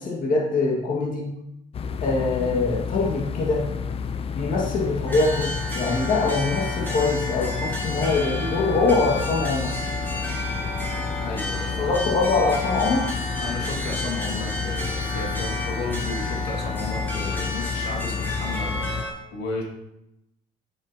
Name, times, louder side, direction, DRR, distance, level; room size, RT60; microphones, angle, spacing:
voice 1, 0.0-1.3 2.0-3.6 4.4-9.7 11.8-13.1, left 3 dB, 55° left, -3 dB, 1.8 m, -23 dB
sound 1, 1.7-19.0, left 6 dB, 35° left, 0.5 m, -31 dB
sound 2, 5.1-19.1, equal, 10° left, 2.7 m, -32 dB
voice 2, 11.2-12.0 13.4-18.9 19.3-19.6, left 2 dB, 75° left, -1 dB, 2.0 m, -33 dB
8.3 x 7.3 x 2.8 m, 0.86 s
cardioid pair, 110°, 17 cm